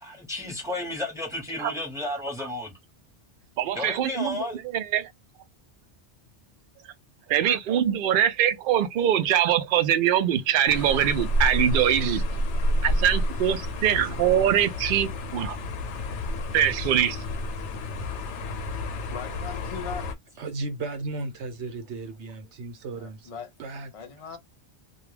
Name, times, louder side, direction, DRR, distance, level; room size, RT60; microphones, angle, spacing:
voice 1, 0.0-2.7 3.7-4.6, left 2 dB, 5° right, 0.8 m, -32 dB
voice 2, 3.6-4.4 4.7-5.1 7.3-12.2 12.8-15.6 16.5-17.2, right 10 dB, 60° right, 0.6 m, -23 dB
sound 1, 10.7-20.1, left 1 dB, 90° left, 0.9 m, -29 dB
voice 3, 19.1-20.1 22.9-23.5 23.9-24.4, left 7 dB, 55° left, 0.3 m, -38 dB
voice 4, 20.4-23.3 23.6-23.9, right 3 dB, 85° right, 1.1 m, -35 dB
2.3 x 2.2 x 3.2 m
omnidirectional pair, 1.2 m